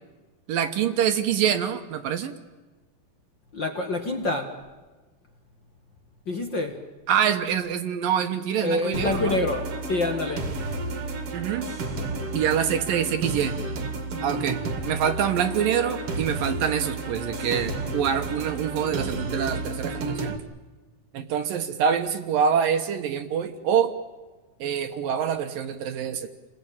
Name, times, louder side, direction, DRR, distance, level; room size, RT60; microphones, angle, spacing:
voice 1, 0.5-2.3 7.1-9.4 11.3-11.7 12.3-13.6 14.2-20.4 21.1-23.9 24.6-26.3, right 8 dB, 65° right, 7 dB, 2.4 m, -25 dB
voice 2, 3.5-4.6 6.2-6.8 8.6-10.5, left 2 dB, 60° left, 4 dB, 1.2 m, -27 dB
sound 1, 8.9-20.4, right 2 dB, 40° right, 2.4 m, -31 dB
29.5 x 21.0 x 8.8 m, 1.3 s
omnidirectional pair, 5.1 m